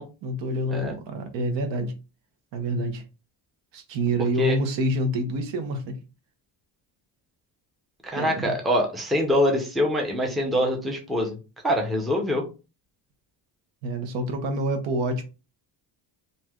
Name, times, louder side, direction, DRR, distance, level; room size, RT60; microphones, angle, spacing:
voice 1, 0.2-1.9 2.5-3.0 3.7-6.0 8.2-8.5 13.8-15.2, right 1 dB, 75° right, 0.9 m, -27 dB
voice 2, 8.0-11.4 11.6-12.5, left 1 dB, ahead, 0.5 m, -24 dB
3.2 x 2.6 x 2.3 m
cardioid pair, 145°, 44 cm